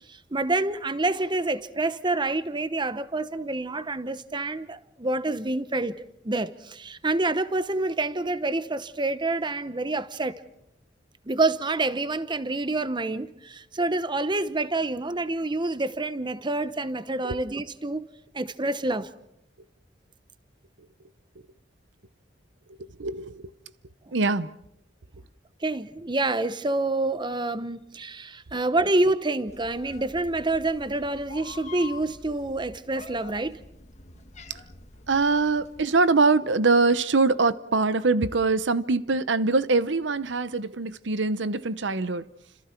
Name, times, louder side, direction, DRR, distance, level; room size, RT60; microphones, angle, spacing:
voice 1, 0.1-6.0 6.2-10.3 11.3-18.1 18.3-19.1 25.6-33.6, right 2 dB, 25° right, 0.9 m, -27 dB
voice 2, 23.0-23.5 24.1-24.5 35.1-42.2, right 3 dB, 75° right, 0.9 m, -23 dB
Meow, 29.5-35.8, left 3 dB, 40° left, 1.7 m, -46 dB
30.0 x 27.0 x 4.5 m
head